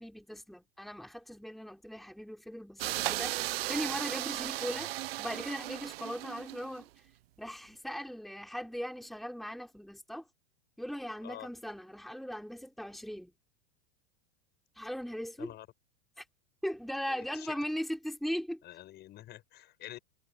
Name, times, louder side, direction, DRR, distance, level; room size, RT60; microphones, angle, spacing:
voice 1, 0.0-4.9 5.2-6.9 7.4-10.3 10.8-13.3 14.8-15.5 16.2-16.3 16.6-18.6, equal, ahead, 3.7 m, -39 dB
sound 1, 2.8-6.8, right 16 dB, 75° right, 0.8 m, -36 dB
voice 2, 17.1-17.6 18.6-20.0, left 14 dB, 35° left, 7.5 m, -47 dB
supercardioid pair, 140°, 30 cm